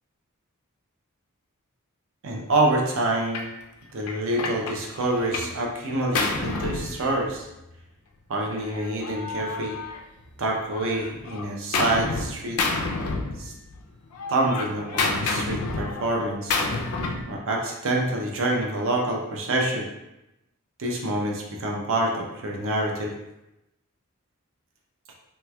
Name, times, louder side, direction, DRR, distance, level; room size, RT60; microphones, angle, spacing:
voice 1, 2.2-3.5 3.9-7.5 8.3-9.8 10.4-12.6 13.4-13.5 14.3-16.6 17.3-19.9 20.8-23.1, right 1 dB, 65° right, 0 dB, 0.6 m, -26 dB
Gunshot gunfire, 3.3-3.5 4.1-5.6 5.9-7.6 8.5-10.3 10.7-12.3 12.6-13.8 14.1-17.3, left 3 dB, 90° left, 0.4 m, -29 dB
3.1 x 3.1 x 2.3 m, 0.92 s
head